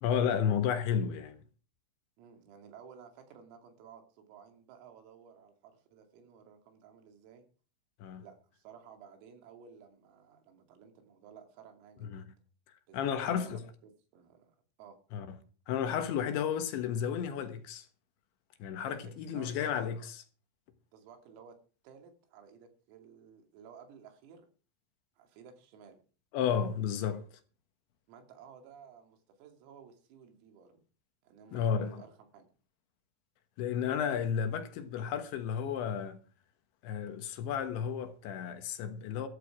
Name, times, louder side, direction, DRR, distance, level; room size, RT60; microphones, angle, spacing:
voice 1, 0.0-1.4 8.0-8.2 12.0-12.3 12.9-13.6 15.1-15.4 15.7-17.9 18.6-20.2 26.3-27.2 31.5-31.9 33.6-36.2 36.8-39.3, left 8 dB, 70° left, 3.3 m, -32 dB
voice 2, 2.2-7.5 8.2-12.2 12.9-15.0 18.9-19.7 20.9-21.6 21.8-24.5 25.2-26.0 28.1-30.8 31.2-32.5, right 7 dB, 85° right, 5.2 m, -55 dB
14.0 x 14.0 x 4.8 m
omnidirectional pair, 5.9 m